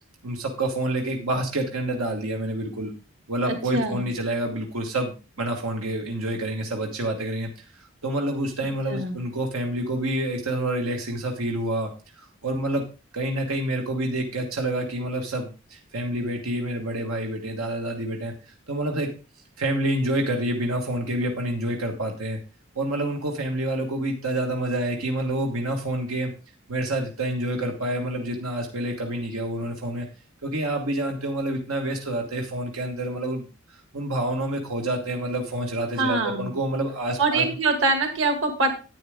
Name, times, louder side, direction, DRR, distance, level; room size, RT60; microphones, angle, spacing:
voice 1, 0.2-2.9 3.3-11.9 12.2-12.8 13.1-19.1 19.6-22.4 22.7-26.3 26.7-30.1 30.4-37.4, right 1 dB, 90° right, 1 dB, 1.4 m, -28 dB
voice 2, 3.5-4.0 8.9-9.2 36.0-36.5 37.2-38.7, right 3 dB, 65° right, 5 dB, 2.0 m, -24 dB
10.5 x 8.9 x 3.6 m, 0.32 s
head